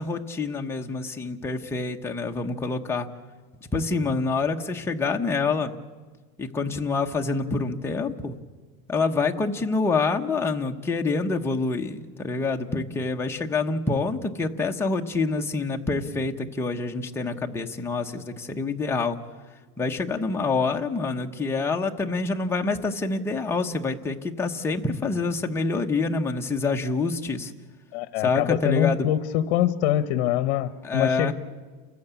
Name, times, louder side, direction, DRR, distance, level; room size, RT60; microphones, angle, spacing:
voice 1, 0.0-3.1 3.7-5.7 6.4-8.4 8.9-19.2 19.8-27.5 28.2-29.1 30.8-31.3, left 3 dB, 10° left, 1 dB, 0.9 m, -26 dB
voice 2, 27.9-31.3, left 12 dB, 60° left, 12 dB, 1.0 m, -24 dB
29.5 x 14.5 x 8.2 m, 1.4 s
cardioid pair, 165°, 32 cm